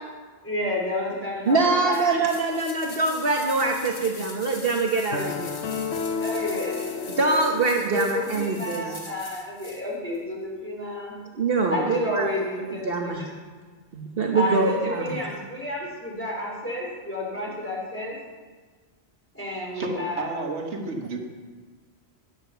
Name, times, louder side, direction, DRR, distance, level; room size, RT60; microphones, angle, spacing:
voice 1, 0.4-2.1 6.2-7.2 7.8-11.2 11.7-13.4 14.3-18.2 19.3-20.4, left 1 dB, 10° left, -4 dB, 3.6 m, -31 dB
voice 2, 1.4-5.6 7.2-9.0 11.3-12.3 12.6-13.3 13.9-15.1, right 3 dB, 60° right, 1 dB, 1.2 m, -24 dB
sound 1, 1.9-9.8 10.1-10.2, left 3 dB, 60° left, 1.5 m, -42 dB
sound 2, 5.1-8.4, left 6 dB, 85° left, 1.2 m, -32 dB
voice 3, 19.7-21.2, right 2 dB, 90° right, 3 dB, 1.5 m, -31 dB
10.5 x 8.0 x 6.9 m, 1.4 s
omnidirectional pair, 1.1 m